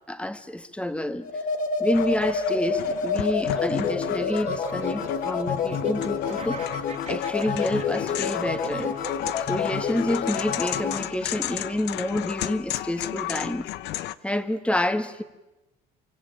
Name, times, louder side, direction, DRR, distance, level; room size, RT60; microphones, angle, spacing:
voice 1, 0.1-1.3 1.8-6.7 7.1-9.0 9.5-13.7 14.2-15.2, left 1 dB, 5° left, 2.0 m, -28 dB
sound 1, 1.2-11.0, left 5 dB, 55° left, 2.9 m, -28 dB
sound 2, 1.9-14.1, left 14 dB, 85° left, 1.0 m, -35 dB
Laughter, 3.2-11.7, right 7 dB, 40° right, 2.4 m, -40 dB
27.5 x 24.5 x 8.8 m
cardioid pair, 110°, 17 cm